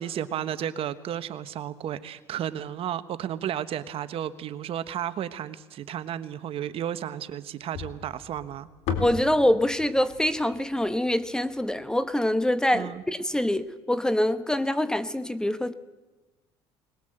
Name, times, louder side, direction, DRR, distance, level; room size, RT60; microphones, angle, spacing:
voice 1, 0.0-8.7 12.7-13.0, right 10 dB, 55° right, 13 dB, 1.2 m, -33 dB
sound 1, 7.7-12.0, left 5 dB, 75° left, 3.6 m, -36 dB
voice 2, 9.0-15.7, left 1 dB, 5° left, 12 dB, 1.1 m, -25 dB
21.0 x 21.0 x 7.9 m, 1.2 s
cardioid pair, 100°, 12 cm